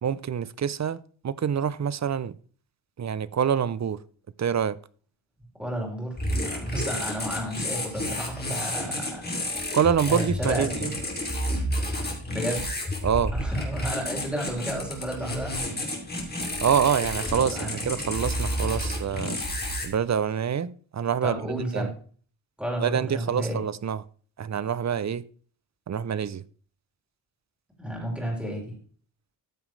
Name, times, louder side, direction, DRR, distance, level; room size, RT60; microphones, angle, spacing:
voice 1, 0.0-2.3 3.0-4.0 4.4-4.8 9.7-10.9 13.0-13.3 16.6-19.4 19.8-21.9 22.8-24.0 24.4-25.2 25.9-26.4, right 8 dB, 35° right, 0.4 m, -26 dB
voice 2, 5.6-9.8 10.1-10.9 12.3-12.7 13.3-15.5 17.4-17.8 21.2-21.9 22.6-23.6 27.8-28.8, right 1 dB, ahead, 3.7 m, -32 dB
sound 1, 6.1-19.9, left 1 dB, 20° left, 2.6 m, -30 dB
13.5 x 7.3 x 3.2 m
wide cardioid pair, 135°, 49 cm